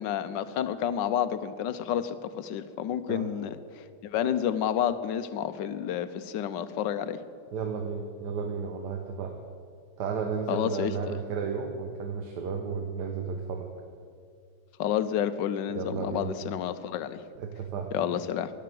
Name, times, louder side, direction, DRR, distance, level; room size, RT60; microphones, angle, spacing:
voice 1, 0.0-3.5 4.0-7.2 10.5-10.9 14.8-17.2 17.9-18.5, left 9 dB, 85° left, 12 dB, 1.4 m, -30 dB
voice 2, 7.5-9.4 10.0-13.7 15.7-16.3 17.4-18.2, right 5 dB, 70° right, 4 dB, 1.5 m, -33 dB
12.0 x 10.0 x 7.7 m, 2.2 s
omnidirectional pair, 1.9 m